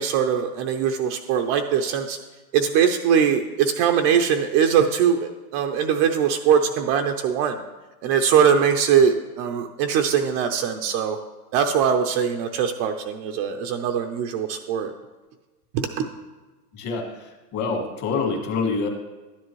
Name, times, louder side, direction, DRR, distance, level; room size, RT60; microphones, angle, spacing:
voice 1, 0.0-2.2 2.5-7.6 8.0-11.2 11.5-14.9 15.7-16.1, right 7 dB, 30° right, 5 dB, 0.5 m, -21 dB
voice 2, 16.7-18.9, left 4 dB, 35° left, 2 dB, 2.1 m, -26 dB
12.0 x 10.0 x 3.1 m, 1.2 s
hypercardioid pair, 125°, 47 cm